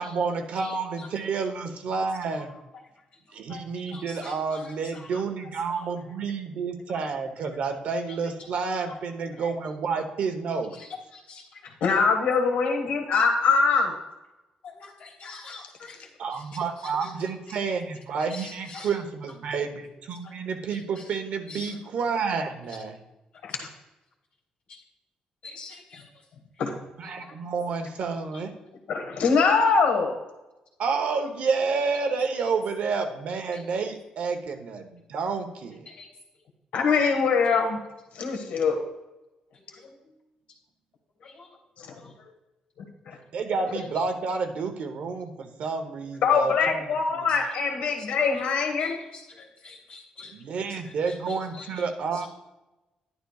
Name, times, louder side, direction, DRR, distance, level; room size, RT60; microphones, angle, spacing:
voice 1, 0.0-2.5 3.3-10.8 16.2-23.0 27.0-28.5 30.8-35.9 43.3-46.8 50.3-52.3, right 5 dB, 60° right, 6 dB, 0.9 m, -30 dB
voice 2, 0.6-1.3 2.5-2.6 3.3-5.2 5.7-5.9 6.9-7.0 9.3-9.5 10.7-11.9 14.6-17.1 17.5-17.6 18.3-18.9 20.2-20.3 20.7-21.0 21.5-21.7 24.7-24.8 25.4-26.2 27.2-27.3 28.3-28.4 33.5-33.6 35.9-36.1 37.4-37.6 39.5-40.1 41.2-41.6 41.9-42.1 47.4-47.5 48.0-48.1 48.8-50.3 50.6-51.8 52.1-52.3, left 4 dB, 60° left, -2 dB, 3.3 m, -46 dB
voice 3, 11.8-13.9 23.4-23.5 26.6-26.7 28.9-30.2 36.7-37.8 38.1-38.8 41.8-41.9 43.1-43.2 46.2-49.0, left 5 dB, 80° left, 3 dB, 1.4 m, -23 dB
11.5 x 11.0 x 2.4 m, 1.0 s
cardioid pair, 170°, 3 cm